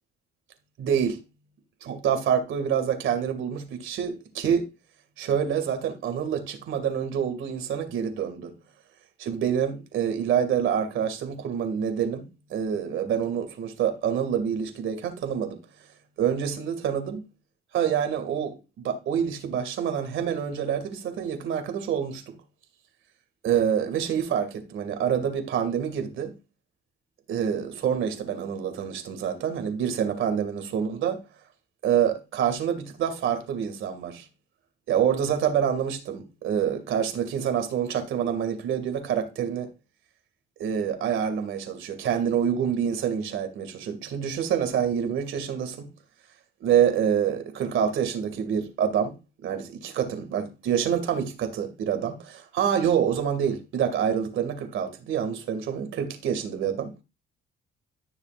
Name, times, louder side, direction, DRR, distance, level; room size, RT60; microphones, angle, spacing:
voice 1, 0.8-1.2 1.8-4.7 5.2-8.5 9.2-12.2 12.5-15.6 16.2-17.2 17.7-18.6 18.8-22.3 23.4-26.3 27.3-31.2 31.8-34.3 34.9-39.7 40.6-45.9 46.6-49.1 49.4-56.9, right 8 dB, 80° right, 2.4 m, -27 dB
14.0 x 6.9 x 2.6 m
cardioid pair, 90°, 20 cm